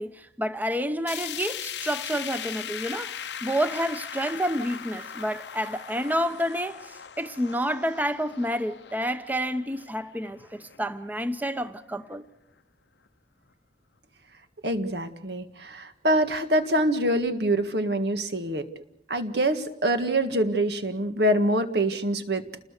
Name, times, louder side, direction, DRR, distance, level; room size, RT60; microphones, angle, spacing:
voice 1, 0.0-12.2, equal, 10° right, 0.9 m, -29 dB
sound 1, 1.1-11.2 11.6-11.7 12.1-12.2 13.1-13.2, left 9 dB, 80° left, 0.9 m, -39 dB
voice 2, 14.6-22.4, right 1 dB, 70° right, 1.8 m, -25 dB
29.0 x 20.0 x 6.7 m
head